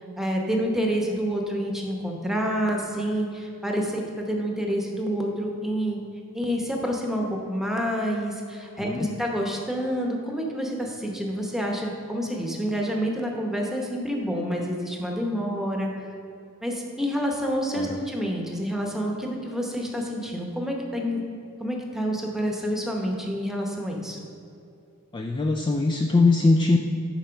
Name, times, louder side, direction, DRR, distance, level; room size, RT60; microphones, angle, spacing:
voice 1, 0.2-6.0 6.3-15.9 16.6-21.2 21.6-24.2, equal, ahead, 0 dB, 0.9 m, -28 dB
voice 2, 8.8-9.1 17.7-18.0 25.1-26.8, left 3 dB, 20° left, 2 dB, 0.3 m, -21 dB
9.0 x 4.2 x 5.7 m, 2.6 s
head